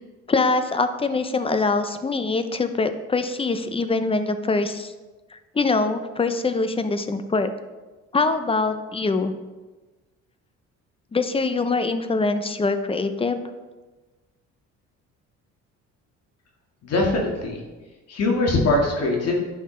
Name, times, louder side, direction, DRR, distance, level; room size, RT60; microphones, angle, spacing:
voice 1, 0.3-4.9 5.3-7.5 8.1-9.3 11.1-13.4, left 3 dB, 20° left, 9 dB, 0.6 m, -23 dB
voice 2, 16.8-17.6 18.1-19.3, left 2 dB, 55° left, -1 dB, 2.0 m, -22 dB
10.0 x 5.7 x 3.3 m, 1.2 s
cardioid pair, 105°, 30 cm